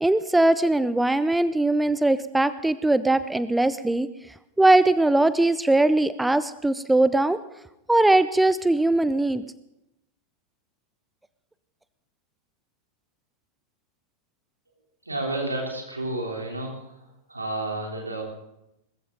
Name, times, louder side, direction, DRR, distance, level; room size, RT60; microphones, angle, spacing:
voice 1, 0.0-4.1 4.6-7.4 7.9-9.4, right 2 dB, 5° right, 15 dB, 0.5 m, -20 dB
voice 2, 15.1-16.7 17.3-18.2, right 2 dB, 80° right, 0 dB, 3.4 m, -30 dB
20.0 x 14.5 x 3.9 m, 0.88 s
figure-of-eight pair, 90°, 0 cm